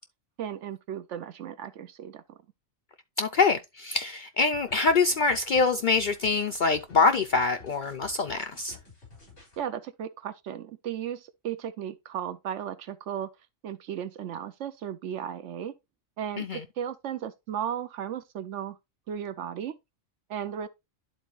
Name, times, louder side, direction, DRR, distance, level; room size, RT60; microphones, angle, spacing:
voice 1, 0.4-2.4 9.6-13.3 13.6-15.7 16.2-16.5 16.8-18.8 19.1-19.8 20.3-20.7, right 9 dB, 70° right, 0.9 m, -35 dB
voice 2, 3.2-8.8 16.4-16.6, left 4 dB, 75° left, 0.4 m, -25 dB
sound 1, 4.5-9.6, left 4 dB, 55° left, 4.6 m, -51 dB
11.0 x 4.0 x 3.0 m
omnidirectional pair, 1.4 m